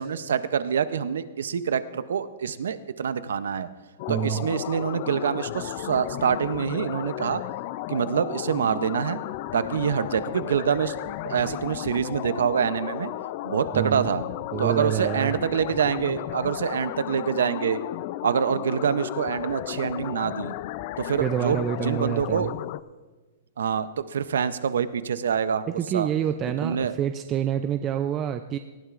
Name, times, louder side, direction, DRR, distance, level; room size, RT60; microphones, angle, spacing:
voice 1, 0.0-3.7 4.1-7.4 7.9-9.2 9.5-10.9 11.2-13.1 13.4-14.2 14.6-17.8 18.2-20.5 21.0-22.5 23.6-25.7 25.9-26.1 26.6-26.9, right 7 dB, 85° right, 14 dB, 0.6 m, -26 dB
sound 1, 4.0-22.8, left 16 dB, 45° left, 0.3 m, -34 dB
voice 2, 4.1-4.5 13.7-14.1 14.5-15.4 21.2-22.5 25.7-28.6, right 10 dB, 25° right, 9 dB, 0.4 m, -27 dB
18.5 x 12.5 x 2.5 m, 1.3 s
hypercardioid pair, 145°, 0 cm